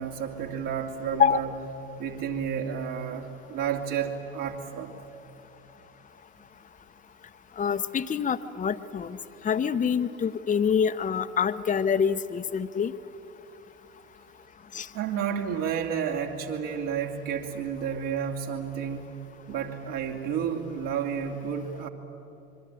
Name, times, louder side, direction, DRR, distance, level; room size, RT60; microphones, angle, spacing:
voice 1, 0.0-1.6 2.0-4.9 14.9-19.2 19.5-21.9, right 7 dB, 55° right, 3 dB, 2.9 m, -31 dB
voice 2, 7.6-9.2 9.4-12.9 14.7-14.9, left 7 dB, 15° left, 10 dB, 0.8 m, -26 dB
26.0 x 23.0 x 8.9 m, 2.9 s
figure-of-eight pair, 65°, 45 cm